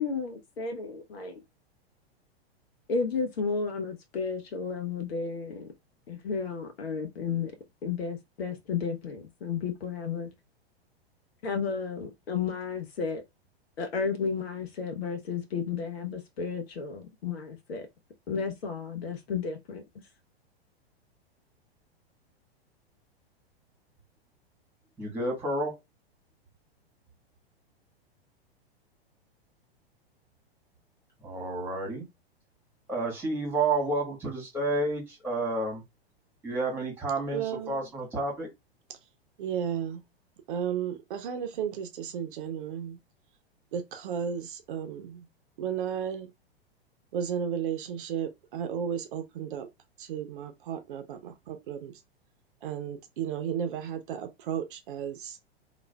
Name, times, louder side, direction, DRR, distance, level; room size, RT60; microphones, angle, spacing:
voice 1, 0.0-1.3 2.9-5.7 6.1-7.5 7.8-10.3 11.4-13.2 13.8-17.9 18.3-19.8, left 5 dB, 70° left, 0.6 m, -32 dB
voice 2, 25.0-25.8 31.2-32.1 32.9-35.8 36.4-38.5, right 2 dB, 5° right, 1.6 m, -30 dB
voice 3, 37.3-37.8 38.9-39.0 39.4-40.0 40.5-43.0 43.7-45.2 45.6-46.3 47.1-49.7 50.0-51.9 52.6-55.4, right 8 dB, 55° right, 0.7 m, -34 dB
3.2 x 2.4 x 2.2 m
figure-of-eight pair, 100°, 31 cm